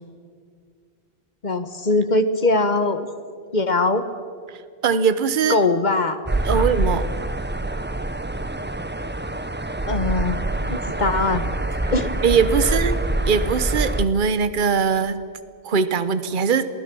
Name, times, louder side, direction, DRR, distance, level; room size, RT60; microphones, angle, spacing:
voice 1, 1.4-3.1 3.5-4.0 5.5-6.2 6.5-6.7 9.9-10.4 10.7-11.5 11.9-12.1 12.6-12.8, left 2 dB, 45° left, 10 dB, 1.3 m, -21 dB
voice 2, 4.8-5.6 6.5-7.1 11.8-11.9 12.2-15.2 15.6-16.7, right 6 dB, 50° right, 13 dB, 1.1 m, -21 dB
sound 1, 6.3-14.0, right 2 dB, 10° right, 0.6 m, -25 dB
27.5 x 19.5 x 6.2 m, 2.2 s
omnidirectional pair, 1.1 m